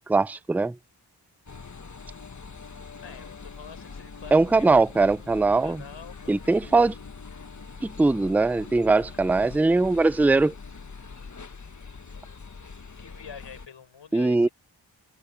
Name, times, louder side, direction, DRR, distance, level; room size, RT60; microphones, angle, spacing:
voice 1, 0.1-0.8 4.3-5.8 6.3-6.9 8.0-10.5 14.1-14.5, right 3 dB, 5° right, 0.4 m, -21 dB
sound 1, 1.5-13.7, left 4 dB, 40° left, 1.5 m, -43 dB
voice 2, 3.0-4.7 5.4-6.7 13.0-14.5, left 7 dB, 85° left, 5.6 m, -46 dB
open air
cardioid pair, 55°, 43 cm